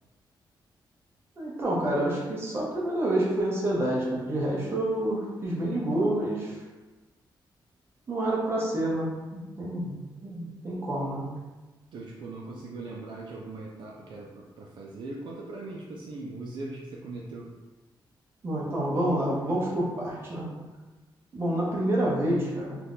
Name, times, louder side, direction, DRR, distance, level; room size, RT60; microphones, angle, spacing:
voice 1, 1.4-6.6 8.1-11.3 18.4-20.5 21.3-22.8, right 1 dB, 30° right, -5 dB, 0.8 m, -28 dB
voice 2, 11.9-17.5, right 2 dB, 65° right, -2 dB, 0.4 m, -40 dB
2.8 x 2.4 x 3.5 m, 1.2 s
wide cardioid pair, 175°, 8 cm